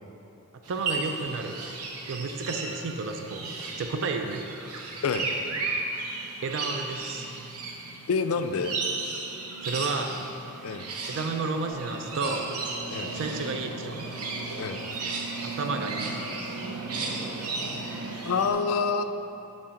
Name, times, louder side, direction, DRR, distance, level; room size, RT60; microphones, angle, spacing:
sound 1, 0.6-18.5, right 3 dB, 80° right, 0.8 m, -34 dB
voice 1, 0.7-1.6 2.1-4.5 6.1-7.3 9.6-10.4 11.1-12.5 13.1-14.1 15.4-16.2, right 3 dB, 55° right, 4 dB, 0.4 m, -32 dB
voice 2, 8.1-8.8 10.6-10.9 12.9-13.1 14.6-14.8 18.2-19.0, left 5 dB, 70° left, 8 dB, 0.4 m, -27 dB
8.6 x 3.2 x 5.7 m, 2.9 s
head